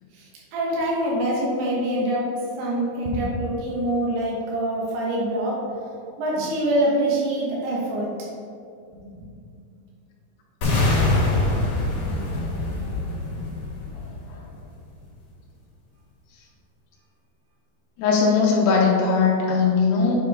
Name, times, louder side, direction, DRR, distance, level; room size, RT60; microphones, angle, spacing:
voice 1, 0.1-5.7 6.2-8.1 9.0-9.3 9.7-9.9, right 1 dB, 75° right, -4 dB, 3.2 m, -25 dB
sound 1, 10.6-14.6, left 2 dB, 55° left, 2.4 m, -24 dB
voice 2, 18.0-20.2, left 5 dB, 85° left, -3 dB, 2.7 m, -19 dB
8.0 x 4.6 x 3.6 m, 2.4 s
omnidirectional pair, 4.7 m